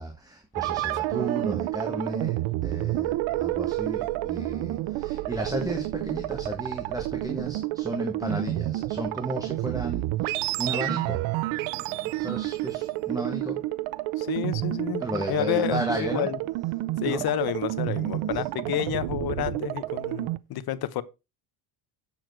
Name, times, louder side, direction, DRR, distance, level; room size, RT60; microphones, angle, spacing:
voice 1, 0.0-11.2 11.7-13.6 15.0-16.3 17.0-17.2 18.2-18.4, right 1 dB, 10° right, 1.5 m, -34 dB
sound 1, 0.5-20.4, right 17 dB, 75° right, 0.7 m, -30 dB
voice 2, 14.2-16.4 17.0-21.0, left 13 dB, 50° left, 0.9 m, -30 dB
7.7 x 7.1 x 4.6 m
cardioid pair, 125°, 47 cm